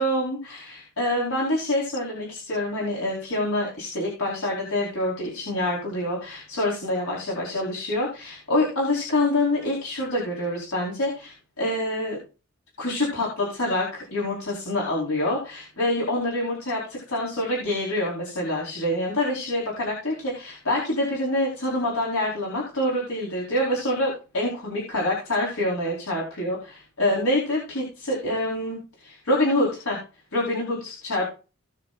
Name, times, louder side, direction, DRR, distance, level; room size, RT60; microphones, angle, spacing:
voice 1, 0.0-12.2 12.8-30.0 30.3-31.3, left 1 dB, 85° left, -4 dB, 4.7 m, -26 dB
19.0 x 6.8 x 2.6 m, 0.32 s
head